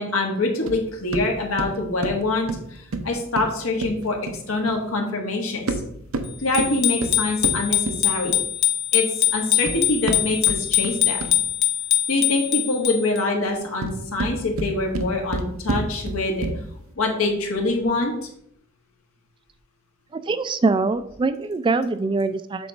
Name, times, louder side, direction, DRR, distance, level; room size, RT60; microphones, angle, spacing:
voice 1, 0.0-4.2 4.5-5.8 6.4-8.4 8.9-11.3 12.1-16.5 17.0-18.1, left 2 dB, 85° left, 1 dB, 1.5 m, -25 dB
Floor Footsteps, 0.7-4.8 5.5-8.6 9.3-11.6 13.6-16.8, right 2 dB, 80° right, 0.7 m, -31 dB
Bicycle bell, 6.5-13.2, left 10 dB, 55° left, 0.7 m, -23 dB
voice 2, 20.1-22.7, right 3 dB, 25° right, 12 dB, 0.3 m, -23 dB
7.8 x 3.1 x 5.1 m, 0.71 s
head